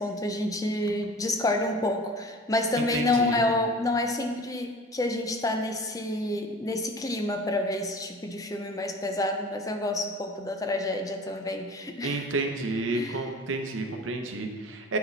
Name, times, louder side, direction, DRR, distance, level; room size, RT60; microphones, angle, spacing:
voice 1, 0.0-12.3 12.9-13.2, left 2 dB, 20° left, 4 dB, 0.4 m, -28 dB
voice 2, 2.8-3.4 12.0-15.0, right 2 dB, 75° right, 4 dB, 0.7 m, -30 dB
9.1 x 4.8 x 3.2 m, 1.5 s
head